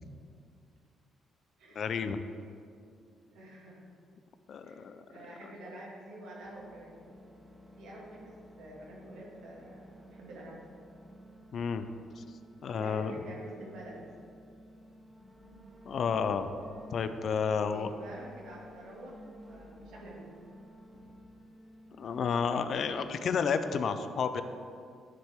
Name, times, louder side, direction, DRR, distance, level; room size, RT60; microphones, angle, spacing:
voice 1, 1.8-2.2 4.5-5.0 11.5-11.9 12.2-12.3 12.6-13.1 15.9-16.5 16.9-17.9 22.0-24.4, left 6 dB, 60° left, 10 dB, 0.5 m, -31 dB
voice 2, 3.3-3.8 4.6-4.8 5.1-6.9 7.8-10.6 12.4-14.0 17.5-19.1 19.5-20.2, right 1 dB, 85° right, -3 dB, 2.2 m, -47 dB
sound 1, 6.4-22.9, equal, 5° right, 1.1 m, -53 dB
10.0 x 7.4 x 3.6 m, 2.4 s
cardioid pair, 90°, 0 cm